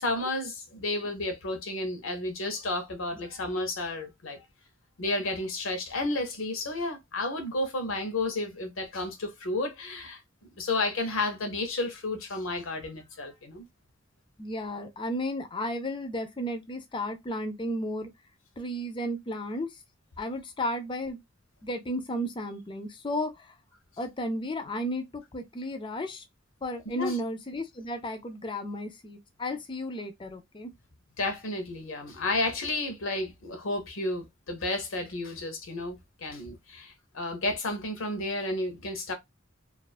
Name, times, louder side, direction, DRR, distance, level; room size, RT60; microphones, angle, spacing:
voice 1, 0.0-4.5 5.0-10.2 10.6-13.7 26.9-27.2 31.2-39.1, left 2 dB, 75° left, 0.7 m, -32 dB
voice 2, 14.4-18.1 18.6-19.7 20.2-21.2 21.6-23.5 24.0-26.2 26.6-30.7, left 1 dB, 25° left, 0.4 m, -33 dB
2.4 x 2.3 x 2.4 m
head